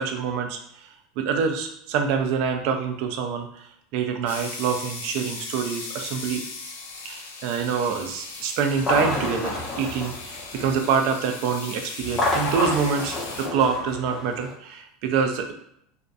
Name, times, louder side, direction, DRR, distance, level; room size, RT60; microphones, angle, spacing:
voice 1, 0.0-6.4 7.0-15.5, right 6 dB, 65° right, 4 dB, 0.3 m, -26 dB
sound 1, 4.3-13.5, left 4 dB, 90° left, 0.4 m, -38 dB
sound 2, 8.7-11.0 12.0-14.5, left 2 dB, 25° left, 0.7 m, -29 dB
2.5 x 2.1 x 2.5 m, 0.71 s
hypercardioid pair, 100°, 0 cm